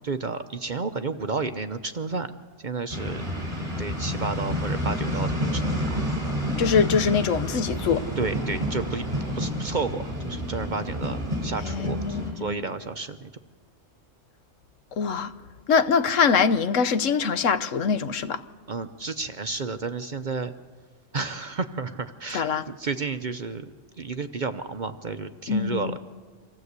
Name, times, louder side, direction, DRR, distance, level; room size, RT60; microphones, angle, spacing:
voice 1, 0.0-2.3 2.6-3.3 3.8-6.0 8.2-9.1 9.3-13.3 18.7-20.5 21.1-26.0, right 4 dB, 45° right, 0.7 m, -31 dB
sound 1, 2.9-12.3, equal, 30° right, 4.1 m, -29 dB
voice 2, 6.6-8.0 11.6-12.6 15.0-15.3 15.7-18.4 22.3-22.6 25.5-26.0, left 6 dB, 75° left, 1.2 m, -23 dB
25.5 x 15.5 x 8.1 m
omnidirectional pair, 1.3 m